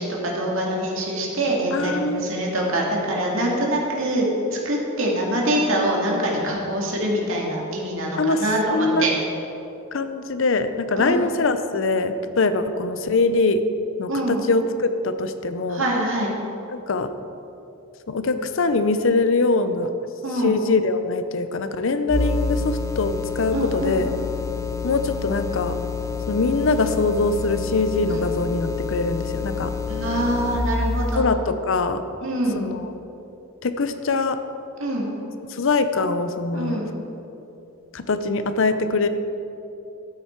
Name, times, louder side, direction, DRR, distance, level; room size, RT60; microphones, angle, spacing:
voice 1, 0.0-9.1 11.0-11.2 14.1-14.4 15.7-16.3 20.2-20.5 23.5-24.0 28.1-28.2 29.9-31.2 32.2-32.6 34.8-35.1 36.5-36.9, right 1 dB, 65° right, -2 dB, 2.3 m, -24 dB
voice 2, 1.7-2.3 8.2-8.4 8.7-9.1 9.9-13.6 14.0-15.8 16.7-17.1 18.1-19.9 20.3-24.1 24.8-25.8 26.3-29.7 31.2-32.0 32.5-32.9 33.6-34.4 35.5-36.8 37.9-39.1, left 3 dB, 65° left, 10 dB, 0.6 m, -23 dB
sound 1, 22.1-30.8, left 4 dB, 15° left, 0.3 m, -28 dB
12.5 x 9.1 x 4.5 m, 2.9 s
head